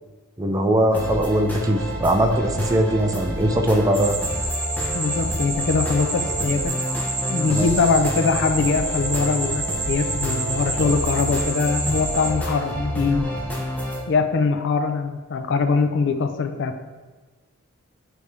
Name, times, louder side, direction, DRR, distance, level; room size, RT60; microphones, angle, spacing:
voice 1, 0.4-4.2 7.5-7.7, right 1 dB, 15° right, 4 dB, 0.4 m, -21 dB
sound 1, 0.9-14.0, equal, 10° left, 0.9 m, -29 dB
sound 2, 3.9-12.3, right 2 dB, 45° right, 1.8 m, -29 dB
voice 2, 4.9-6.8 7.3-13.3 14.1-16.8, left 4 dB, 55° left, 7 dB, 0.4 m, -22 dB
9.2 x 3.4 x 3.2 m, 1.3 s
head